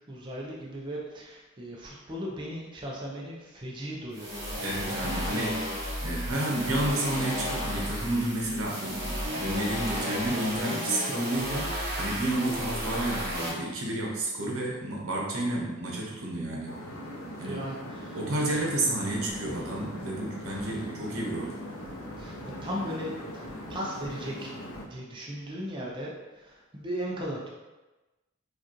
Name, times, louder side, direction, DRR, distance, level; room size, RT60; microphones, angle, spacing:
voice 1, 0.1-4.7 5.0-5.1 17.4-18.2 22.2-24.5 24.8-27.5, equal, 25° right, -4 dB, 0.6 m, -37 dB
sound 1, 4.1-13.5, equal, 50° right, 1.3 m, -33 dB
voice 2, 4.6-5.6 6.0-16.8 17.4-17.6 18.1-21.5, right 1 dB, 85° right, -3 dB, 1.0 m, -31 dB
sound 2, 16.7-24.8, equal, 75° left, 0.7 m, -41 dB
sound 3, 19.3-24.9, right 1 dB, 30° left, 0.9 m, -50 dB
4.9 x 2.4 x 3.0 m, 1.1 s
head